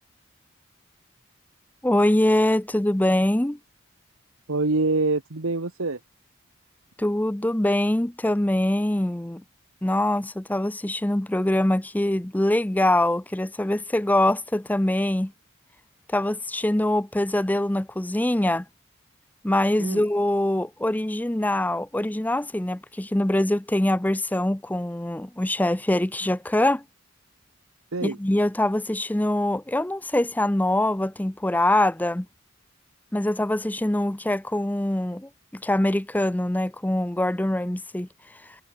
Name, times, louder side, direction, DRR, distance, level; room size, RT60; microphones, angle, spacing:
voice 1, 1.8-3.6 7.0-9.4 9.8-15.3 16.1-18.7 19.4-26.8 28.0-32.3 33.1-38.6, left 1 dB, 10° left, 0.5 m, -24 dB
voice 2, 4.5-6.0 19.8-20.0 27.9-28.2, right 3 dB, 85° right, 1.5 m, -25 dB
head